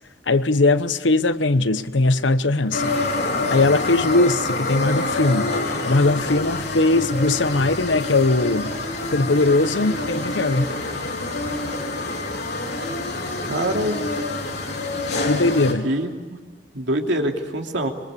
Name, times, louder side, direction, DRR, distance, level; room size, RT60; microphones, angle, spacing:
voice 1, 0.3-3.0 3.5-8.7 9.1-10.7 15.3-15.9, left 2 dB, 85° left, 1.0 m, -20 dB
sound 1, 2.7-15.7, left 2 dB, 60° left, 3.8 m, -27 dB
voice 2, 13.5-14.0 15.8-16.1 16.7-17.9, right 1 dB, 70° right, 3.0 m, -24 dB
25.5 x 23.0 x 8.5 m
head